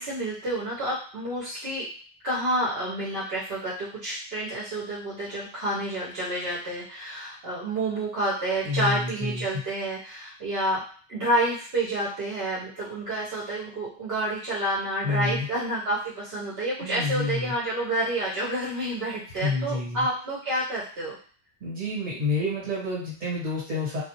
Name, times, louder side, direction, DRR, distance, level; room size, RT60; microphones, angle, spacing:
voice 1, 0.0-1.9 2.2-10.8 11.1-21.2, right 1 dB, 65° right, -8 dB, 0.9 m, -29 dB
voice 2, 8.6-9.4 15.0-15.5 16.8-17.5 19.4-20.0 21.6-24.0, left 3 dB, 45° right, -5 dB, 1.3 m, -29 dB
2.3 x 2.0 x 2.8 m, 0.43 s
omnidirectional pair, 1.1 m